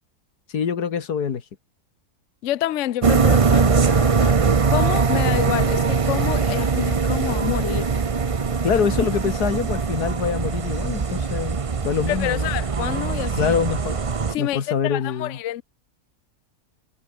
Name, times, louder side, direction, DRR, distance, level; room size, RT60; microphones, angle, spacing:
voice 1, 0.5-1.4 8.6-12.5 13.4-14.0 14.4-15.4, left 7 dB, 90° left, 2.2 m, -25 dB
voice 2, 2.4-8.0 12.1-13.5 14.3-15.6, left 13 dB, 60° left, 0.9 m, -28 dB
sound 1, 3.0-14.4, right 5 dB, 35° right, 0.6 m, -21 dB
omnidirectional pair, 1.6 m